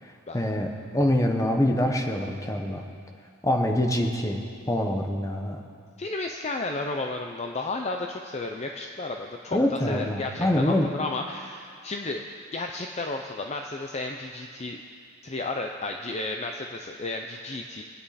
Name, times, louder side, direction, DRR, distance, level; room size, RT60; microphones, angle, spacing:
voice 1, 0.3-2.8 3.4-5.6 9.5-10.9, left 1 dB, 15° left, 3 dB, 1.1 m, -25 dB
voice 2, 6.0-12.2 12.5-14.8 15.2-17.8, left 2 dB, 30° left, 3 dB, 0.6 m, -33 dB
23.5 x 9.3 x 4.3 m, 2.2 s
head